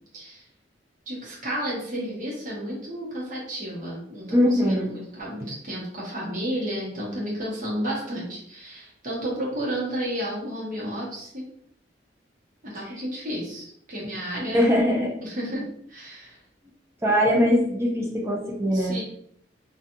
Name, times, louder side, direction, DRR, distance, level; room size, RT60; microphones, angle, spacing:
voice 1, 1.1-11.4 12.6-14.7 15.2-16.4 18.7-19.0, equal, 45° right, -5 dB, 0.9 m, -32 dB
voice 2, 4.3-4.9 14.5-15.1 17.0-19.0, equal, 15° right, -2 dB, 0.5 m, -21 dB
2.7 x 2.3 x 2.6 m, 0.67 s
head